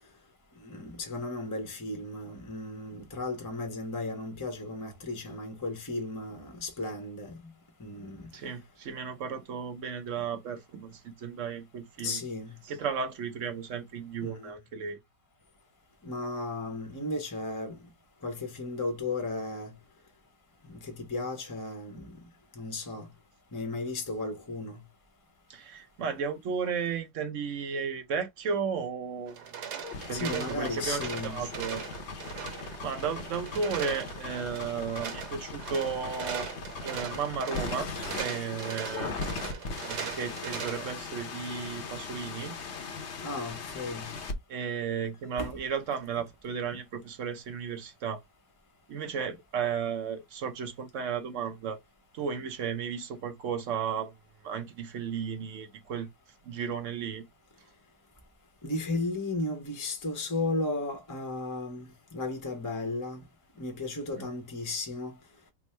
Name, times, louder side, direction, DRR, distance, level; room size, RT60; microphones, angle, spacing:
voice 1, 0.6-7.5 7.8-8.3 12.0-12.6 14.2-14.5 16.0-17.8 18.2-19.7 20.8-22.1 22.6-23.1 23.5-24.8 30.1-31.4 43.2-44.1 45.4-45.5 58.6-63.2 63.6-65.1, left 2 dB, 20° left, 0.6 m, -35 dB
voice 2, 8.3-12.2 12.6-15.0 25.5-29.4 30.1-31.8 32.8-36.5 36.8-37.9 38.2-39.1 39.9-42.5 44.5-48.2 48.9-51.8 52.1-54.1 54.4-56.1 56.4-57.2, right 6 dB, 60° right, 1.0 m, -34 dB
sound 1, 29.3-40.9, right 7 dB, 85° right, 1.5 m, -40 dB
sound 2, 29.8-44.3, left 4 dB, 55° left, 0.9 m, -39 dB
3.5 x 2.1 x 4.2 m
omnidirectional pair, 1.7 m